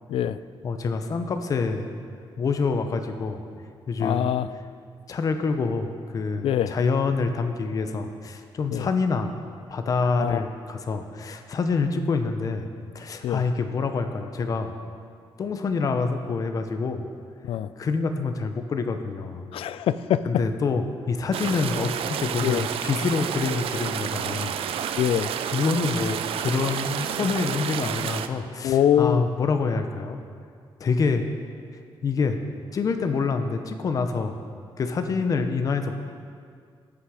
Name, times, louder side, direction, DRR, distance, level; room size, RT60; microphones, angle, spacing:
voice 1, 0.6-1.9 2.4-3.4 3.9-4.3 5.1-9.3 9.7-12.7 12.9-14.8 15.4-17.1 17.8-19.4 20.3-24.6 25.5-30.2 30.8-31.3 32.0-32.4 32.7-34.4 34.8-36.0, left 4 dB, 40° left, 7 dB, 0.6 m, -26 dB
voice 2, 4.0-4.5 6.4-6.7 8.7-8.9 10.2-10.4 13.2-13.4 17.4-17.7 19.5-20.3 22.4-22.6 25.0-25.3 28.6-29.3, left 10 dB, 80° left, 15 dB, 0.4 m, -23 dB
sound 1, 21.3-28.3, right 9 dB, 80° right, 0.5 m, -30 dB
17.0 x 6.1 x 4.8 m, 2.2 s
wide cardioid pair, 165°, 9 cm